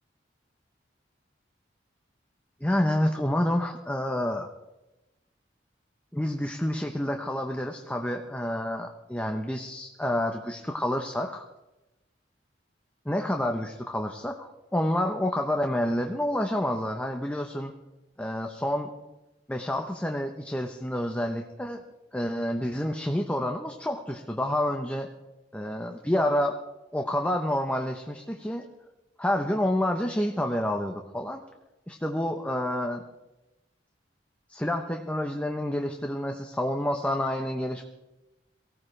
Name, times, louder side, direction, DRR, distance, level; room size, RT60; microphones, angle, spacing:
voice 1, 2.6-4.5 6.1-11.4 13.0-17.7 18.2-18.9 19.5-21.8 22.1-25.1 25.5-26.5 26.9-28.6 29.2-31.4 31.9-33.0 34.5-37.8, left 1 dB, 10° left, 3 dB, 0.9 m, -28 dB
23.5 x 17.0 x 3.3 m, 0.99 s
head